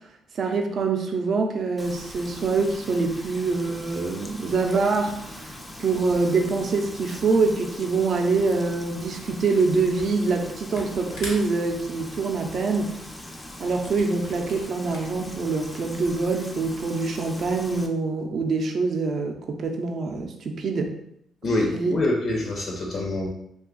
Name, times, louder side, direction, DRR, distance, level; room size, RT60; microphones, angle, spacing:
voice 1, 0.4-12.9 13.6-20.9 21.7-22.0, right 4 dB, 55° right, 4 dB, 0.5 m, -25 dB
Frying (food), 1.8-17.9, left 1 dB, 10° left, 0.4 m, -41 dB
Camera, 10.0-10.4 10.7-15.2, left 2 dB, 80° left, 1.0 m, -42 dB
voice 2, 21.4-23.3, left 2 dB, 55° left, -1 dB, 0.7 m, -25 dB
2.6 x 2.3 x 3.8 m, 0.76 s
cardioid pair, 90°, 0 cm